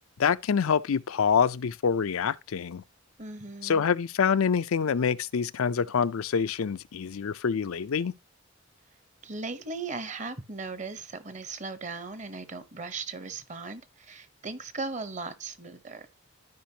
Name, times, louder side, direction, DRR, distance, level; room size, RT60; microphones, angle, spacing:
voice 1, 0.0-2.8 3.6-8.1, left 6 dB, 90° left, 0.5 m, -26 dB
voice 2, 3.2-3.8 9.2-16.1, right 3 dB, 35° right, 0.9 m, -38 dB
13.5 x 5.1 x 2.8 m
head